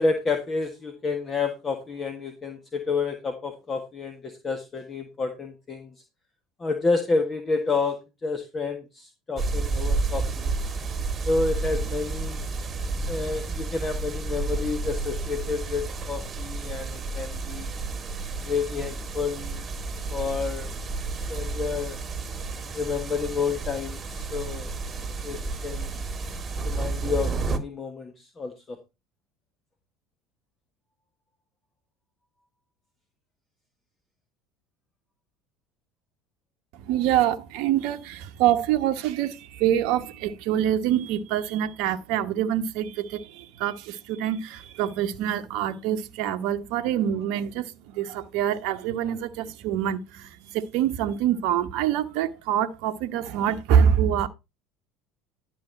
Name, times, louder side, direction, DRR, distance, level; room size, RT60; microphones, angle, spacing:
voice 1, 0.0-5.9 6.6-10.5 11.2-12.4 13.1-17.7 18.4-19.7 20.1-20.7 21.3-22.0 22.7-24.7 25.2-26.0 26.6-28.8, left 4 dB, 30° left, 1.4 m, -29 dB
sound 1, 9.4-27.6, right 3 dB, 30° right, 1.5 m, -31 dB
voice 2, 36.7-54.3, right 10 dB, 60° right, 1.0 m, -25 dB
11.5 x 5.5 x 4.2 m
hypercardioid pair, 70°, 0 cm